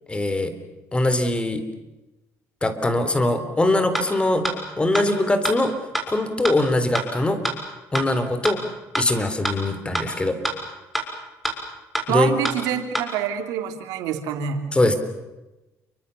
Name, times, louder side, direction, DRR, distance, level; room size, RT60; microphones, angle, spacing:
voice 1, 0.1-0.5 0.9-1.6 2.6-4.5 4.8-5.7 6.1-7.4 7.9-8.6 9.0-10.4 12.1-12.4 14.7-14.9, left 2 dB, 15° left, 11 dB, 3.7 m, -22 dB
sound 1, 3.9-4.0 4.4-4.5 4.9-5.0 5.4-5.5 5.9-6.0 6.4-6.5 6.9-7.0 7.4-7.5 7.9-8.0 8.4-8.5 8.9-9.0 9.4-9.5 9.9-10.0 10.4-10.5 10.9-11.0 11.4-11.5 11.9-12.0 12.4-12.5 12.9-13.0, right 2 dB, ahead, 6.5 m, -24 dB
voice 2, 12.1-14.7, right 9 dB, 90° right, 6 dB, 3.4 m, -26 dB
29.5 x 24.0 x 7.1 m, 1.0 s
cardioid pair, 100°, 6 cm